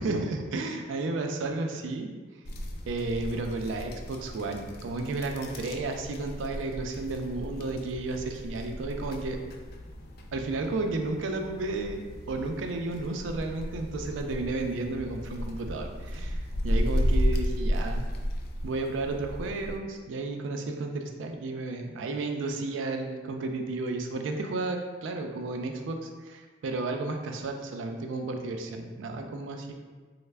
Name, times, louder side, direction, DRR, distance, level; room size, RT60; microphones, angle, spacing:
voice 1, 0.0-2.1 2.9-9.4 10.3-12.0 12.3-18.1 18.6-29.7, right 3 dB, 90° right, 4 dB, 0.4 m, -32 dB
sound 1, 2.5-19.8, equal, 55° left, 0.3 m, -34 dB
3.2 x 2.0 x 3.3 m, 1.4 s
head